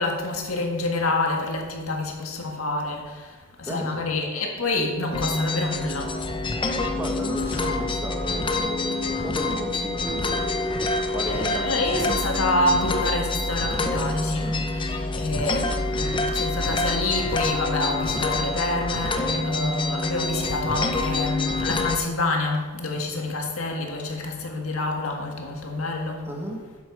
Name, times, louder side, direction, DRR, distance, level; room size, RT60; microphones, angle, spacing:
voice 1, 0.0-6.3 11.3-26.3, left 2 dB, 75° left, 1.8 m, -27 dB
voice 2, 3.6-4.1 6.9-10.8 11.1-12.1 14.4-14.7 26.3-26.8, right 1 dB, 10° right, 1.3 m, -34 dB
sound 1, 5.1-22.0, left 2 dB, 25° left, 0.7 m, -26 dB
11.0 x 7.6 x 4.8 m
head